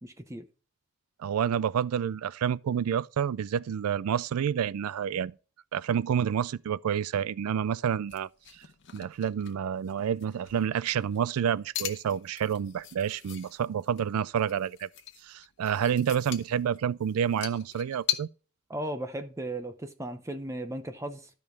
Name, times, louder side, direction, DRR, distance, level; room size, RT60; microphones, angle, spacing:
voice 1, 0.0-0.5 18.7-21.3, right 1 dB, 15° right, 0.6 m, -36 dB
voice 2, 1.2-5.3 5.7-8.6 8.9-14.9 15.2-18.3, right 8 dB, 85° right, 0.4 m, -29 dB
sound 1, 8.0-18.2, left 12 dB, 55° left, 1.0 m, -40 dB
13.0 x 5.3 x 4.6 m
head